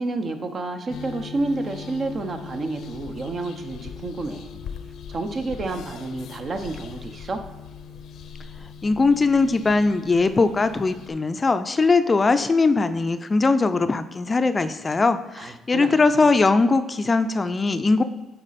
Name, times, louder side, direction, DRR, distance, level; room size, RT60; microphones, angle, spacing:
voice 1, 0.0-4.6 5.1-7.4 15.4-16.4, right 2 dB, 45° right, 6 dB, 0.9 m, -30 dB
sound 1, 0.9-11.1, left 6 dB, 70° left, 0.6 m, -40 dB
voice 2, 8.8-18.0, left 3 dB, 30° left, 10 dB, 0.5 m, -20 dB
8.8 x 4.3 x 4.2 m, 1.1 s
supercardioid pair, 75°, 0 cm